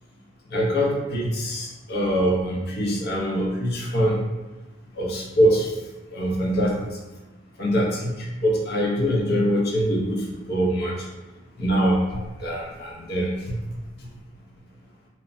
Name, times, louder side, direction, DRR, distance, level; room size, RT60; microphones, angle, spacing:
voice 1, 0.5-4.2 5.0-5.7 6.1-7.0 7.6-11.0 11.6-13.6 14.0-14.1, equal, 55° left, -2 dB, 0.6 m, -24 dB
3.0 x 2.0 x 2.5 m, 1.1 s
head